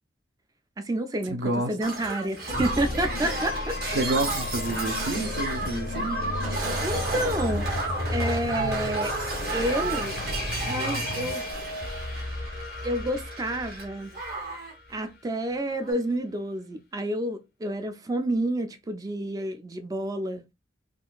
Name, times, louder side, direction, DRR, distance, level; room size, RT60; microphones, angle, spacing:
voice 1, 0.8-3.8 6.8-7.7 8.1-9.1 9.5-10.2 10.6-11.4 11.7-11.8 12.8-14.2 14.5-14.6 14.9-20.4, right 1 dB, 20° right, 0.3 m, -29 dB
voice 2, 1.3-1.7 3.9-6.2, right 2 dB, 75° right, 0.6 m, -29 dB
Shatter, 1.8-13.8 14.1-14.7 15.8-15.9, right 2 dB, 55° right, 1.1 m, -32 dB
sound 1, 2.5-15.2, left 2 dB, 55° left, 0.5 m, -34 dB
3.6 x 2.4 x 2.2 m
head